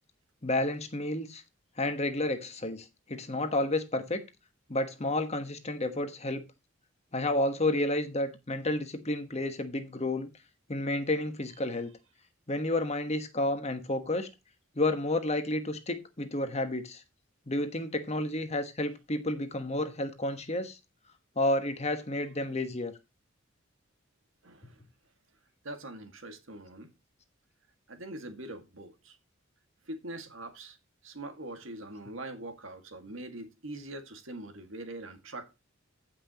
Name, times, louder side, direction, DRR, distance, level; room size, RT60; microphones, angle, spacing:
voice 1, 0.4-1.4 1.8-4.2 4.7-6.4 7.1-10.3 10.7-11.9 12.5-14.3 14.8-17.0 17.5-20.8 21.4-22.9, left 1 dB, 30° left, 1.2 m, -31 dB
voice 2, 24.4-24.8 25.6-26.9 27.9-29.2 29.9-30.8 31.0-35.6, right 1 dB, 70° right, 2.0 m, -43 dB
15.5 x 5.9 x 2.9 m
head